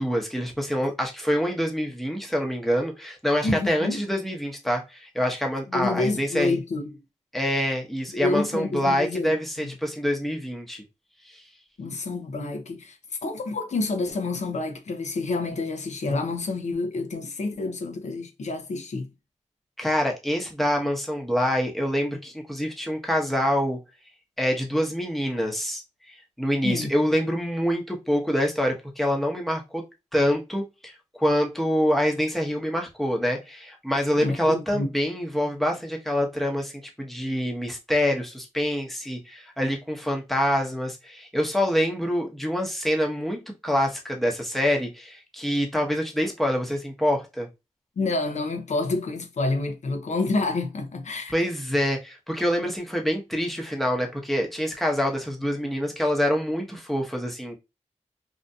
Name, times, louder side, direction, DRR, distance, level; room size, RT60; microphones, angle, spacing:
voice 1, 0.0-6.6 7.3-10.8 11.3-11.4 19.8-23.8 24.4-25.8 26.1-29.8 30.1-36.7 37.0-47.5 51.3-57.6, equal, ahead, 0.8 m, -26 dB
voice 2, 3.4-4.0 5.7-7.0 8.1-9.7 11.8-19.1 26.6-26.9 34.2-34.9 48.0-51.3, left 3 dB, 70° left, 0.5 m, -28 dB
2.6 x 2.5 x 2.2 m
cardioid pair, 60°, 13 cm